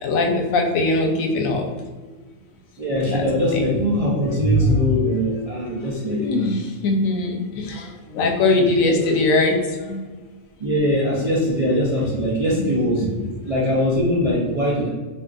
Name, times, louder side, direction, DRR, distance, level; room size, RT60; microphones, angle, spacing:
voice 1, 0.0-1.7 3.1-3.3 3.5-3.6 4.2-4.8 5.1-5.3 6.1-10.0 12.5-13.3, left 2 dB, 85° left, 2 dB, 1.0 m, -21 dB
voice 2, 2.8-6.5 10.6-13.1 13.4-14.9, equal, 50° right, -7 dB, 0.4 m, -22 dB
3.6 x 2.5 x 2.4 m, 1.3 s
omnidirectional pair, 1.4 m